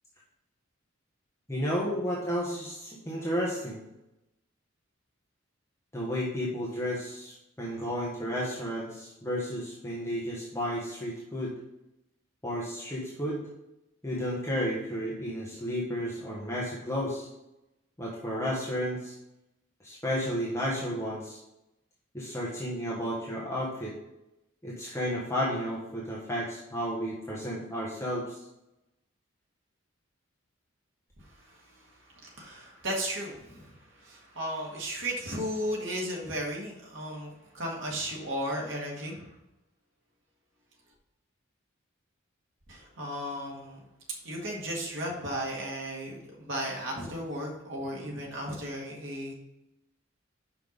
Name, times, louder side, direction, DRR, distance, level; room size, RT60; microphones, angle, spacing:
voice 1, 1.5-3.8 5.9-11.5 12.4-13.5 14.0-17.3 18.0-19.1 19.8-21.4 22.1-24.0 24.6-28.4, equal, 15° left, -5 dB, 1.3 m, -32 dB
voice 2, 31.2-39.3 42.7-43.8 44.2-49.3, equal, 65° right, -2 dB, 1.8 m, -35 dB
5.9 x 5.6 x 5.2 m, 0.91 s
head